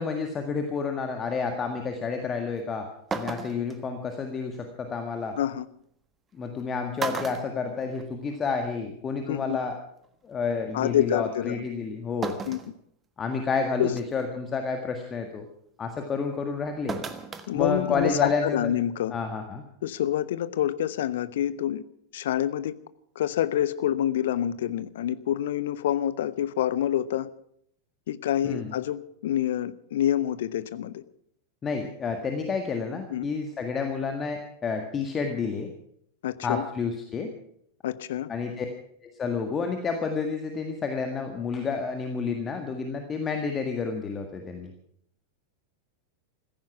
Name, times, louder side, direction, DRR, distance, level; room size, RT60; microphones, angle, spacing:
voice 1, 0.0-2.9 3.1-5.4 6.3-9.8 10.2-12.4 13.2-15.5 15.8-17.0 17.5-18.7 19.1-19.6 28.4-28.7 31.6-35.7 36.4-37.3 38.3-38.7 39.0-44.7, left 5 dB, 20° left, 5 dB, 1.8 m, -30 dB
sound 1, 2.6-2.7 3.1-3.8 5.4-5.5 6.4-6.6 7.0-8.4 8.7-8.8 10.0-10.1 12.2-12.7 13.3-13.4 14.0-14.3 16.9-17.5 17.8-17.9, right 4 dB, 20° right, 1.4 m, -34 dB
voice 2, 9.3-9.6 10.7-11.6 12.5-12.6 13.8-13.9 17.5-19.1 19.8-21.8 22.1-22.7 23.2-27.3 28.1-31.0 33.1-33.3 36.2-36.7 37.8-38.3, left 11 dB, 55° left, 16 dB, 0.8 m, -27 dB
16.0 x 14.5 x 6.0 m, 0.68 s
figure-of-eight pair, 90°, 0 cm